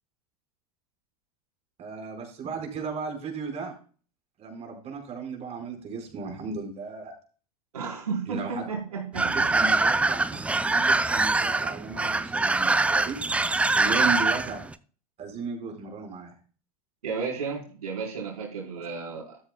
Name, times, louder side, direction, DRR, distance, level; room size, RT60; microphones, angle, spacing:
voice 1, 1.8-3.7 4.4-7.1 8.3-8.7 9.2-10.2 10.6-13.2 13.7-14.6 15.2-16.3, right 5 dB, 35° right, 2 dB, 4.6 m, -35 dB
voice 2, 7.7-9.5 13.8-13.9 17.0-19.4, right 5 dB, 80° right, -3 dB, 4.1 m, -33 dB
sound 1, 9.1-14.7, right 3 dB, 5° right, 0.4 m, -24 dB
13.0 x 13.0 x 2.2 m, 0.39 s
hypercardioid pair, 90°, 19 cm